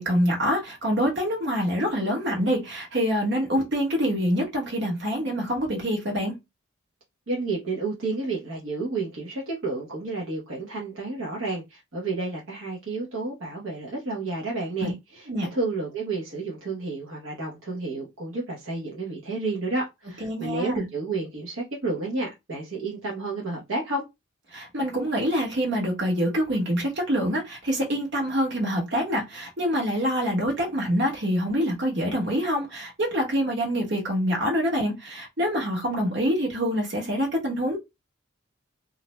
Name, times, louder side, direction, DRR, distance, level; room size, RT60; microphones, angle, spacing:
voice 1, 0.0-6.3 14.8-14.9 15.3-15.5 20.2-20.8 24.5-37.8, equal, 55° right, 1.1 m, -26 dB
voice 2, 7.3-24.0, right 3 dB, 70° right, 0.8 m, -31 dB
2.5 x 2.1 x 3.0 m
head